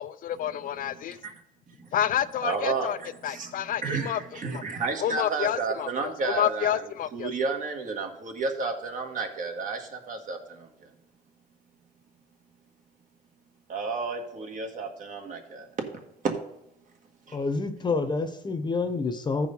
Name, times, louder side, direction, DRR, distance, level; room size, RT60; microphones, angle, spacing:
voice 1, 0.0-1.2 1.9-3.0 3.2-4.2 4.5-4.6 5.0-7.3, left 10 dB, 55° left, 0.5 m, -29 dB
voice 2, 0.8-1.3 1.8-1.9 2.4-6.9 7.1-10.9 13.7-15.7 16.2-16.3 17.3-17.4, right 4 dB, 50° right, 1.8 m, -32 dB
voice 3, 17.3-19.5, left 3 dB, 25° left, 1.0 m, -28 dB
14.0 x 4.8 x 5.4 m
cardioid pair, 110°, 17 cm